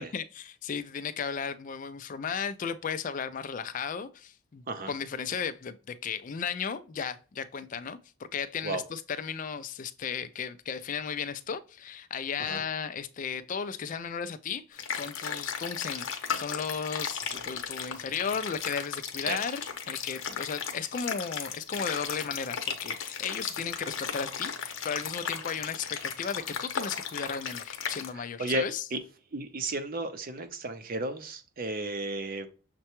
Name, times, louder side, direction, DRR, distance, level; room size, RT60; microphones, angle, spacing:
voice 1, 0.0-5.8 6.0-8.0 8.3-28.8, left 6 dB, 35° left, 0.3 m, -35 dB
sound 1, 14.8-28.1, left 7 dB, 65° left, 0.7 m, -36 dB
voice 2, 28.1-28.6 28.9-29.0 29.3-32.5, right 2 dB, 40° right, 0.5 m, -33 dB
6.5 x 2.2 x 2.9 m
head